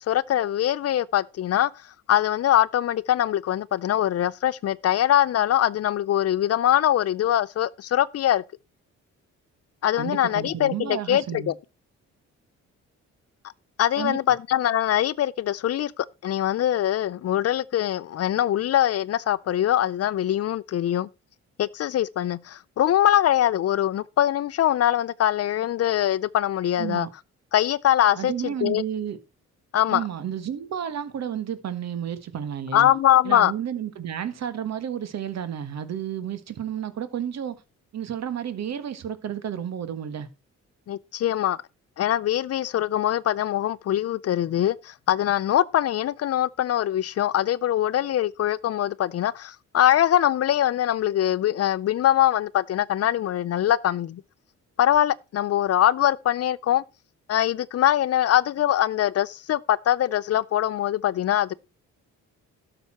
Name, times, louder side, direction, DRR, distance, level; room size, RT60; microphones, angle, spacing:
voice 1, 0.1-1.7 2.1-8.4 9.8-11.5 13.8-21.1 21.6-27.1 27.5-28.8 29.7-30.0 32.7-33.5 40.9-41.6 42.0-54.2 54.8-56.8 57.3-61.5, left 11 dB, 55° left, 0.5 m, -23 dB
voice 2, 10.0-11.5 14.0-14.2 26.8-27.1 28.2-29.2 29.9-32.9 33.2-37.6 37.9-40.3, right 9 dB, 60° right, 1.5 m, -31 dB
12.0 x 7.0 x 4.3 m
cardioid pair, 90°, 30 cm